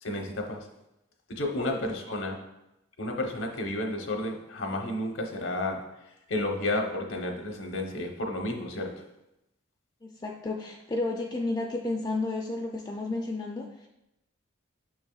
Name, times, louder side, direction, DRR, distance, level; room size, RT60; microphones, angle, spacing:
voice 1, 0.0-0.7 1.3-2.4 3.0-5.8 6.3-8.9, left 1 dB, 80° left, 2 dB, 1.0 m, -31 dB
voice 2, 10.0-13.9, left 2 dB, 20° left, 1 dB, 0.4 m, -32 dB
6.7 x 6.1 x 2.4 m, 0.90 s
head